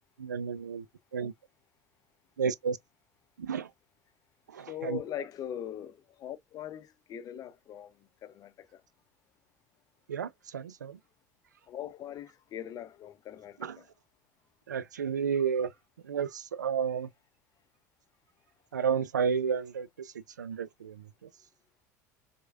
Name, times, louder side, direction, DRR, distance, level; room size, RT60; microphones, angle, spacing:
voice 1, 0.2-0.9 1.1-1.3 2.4-2.8 3.4-3.7 4.5-5.0 10.1-11.0 13.6-13.8 14.7-15.7 16.0-17.1 18.7-21.3, right 6 dB, 85° right, 0.3 m, -32 dB
voice 2, 4.7-8.8 11.7-13.9, left 10 dB, 40° left, 0.6 m, -41 dB
4.5 x 2.2 x 2.4 m
hypercardioid pair, 75°, 9 cm